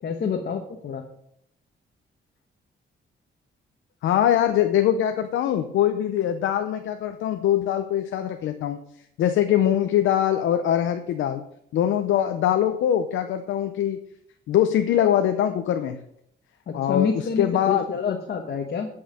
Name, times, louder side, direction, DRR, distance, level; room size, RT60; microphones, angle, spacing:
voice 1, 0.0-1.0 16.7-18.9, left 6 dB, 60° left, 3 dB, 1.2 m, -27 dB
voice 2, 4.0-8.8 9.2-11.4 11.7-14.0 14.5-16.0 16.7-17.8, left 10 dB, 90° left, 7 dB, 0.7 m, -22 dB
10.0 x 5.6 x 6.4 m, 0.72 s
cardioid pair, 95°, 19 cm